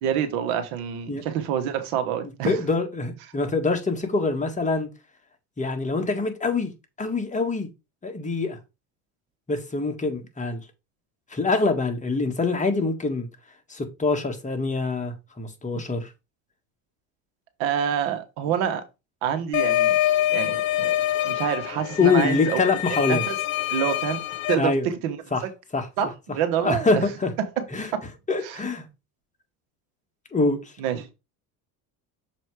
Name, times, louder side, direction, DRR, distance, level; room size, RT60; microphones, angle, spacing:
voice 1, 0.0-2.6 17.6-18.8 19.2-19.9 20.3-20.9 21.2-22.6 23.0-23.3 23.7-24.2 24.5-25.2 25.4-25.5 26.0-27.0 27.4-27.6 28.4-28.6 30.8-31.1, right 9 dB, 75° right, 1.4 m, -27 dB
voice 2, 2.4-4.9 5.6-6.7 7.0-7.7 8.0-8.6 9.5-10.6 11.3-13.3 13.7-16.1 22.0-23.2 24.6-24.9 25.3-25.4 25.7-25.9 26.6-27.3 27.7-27.9 28.3-28.8 30.3-30.7, left 3 dB, 20° left, 1.6 m, -24 dB
sound 1, 19.5-24.6, left 13 dB, 60° left, 1.2 m, -25 dB
6.8 x 3.1 x 4.8 m
supercardioid pair, 100°, 38 cm